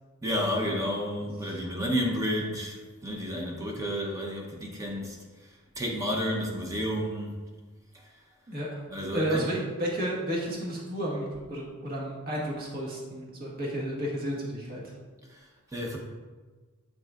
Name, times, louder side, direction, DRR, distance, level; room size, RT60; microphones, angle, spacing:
voice 1, 0.2-5.5 5.8-7.3 7.9-8.1 8.9-9.4 15.3-16.0, equal, 15° right, 0 dB, 0.8 m, -31 dB
voice 2, 8.5-8.9 9.1-14.9, right 1 dB, 40° right, -3 dB, 1.5 m, -32 dB
7.4 x 6.2 x 2.5 m, 1.4 s
head